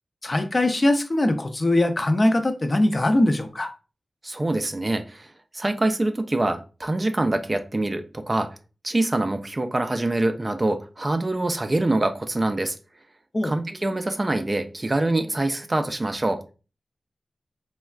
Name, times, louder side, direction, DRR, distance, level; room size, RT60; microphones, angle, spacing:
voice 1, 0.2-3.7 13.3-13.6, left 1 dB, 40° left, 0.4 m, -21 dB
voice 2, 4.2-8.6 8.8-12.8 13.4-16.4, right 2 dB, 30° right, 0.3 m, -25 dB
3.3 x 2.1 x 2.3 m
wide cardioid pair, 65°, 0 cm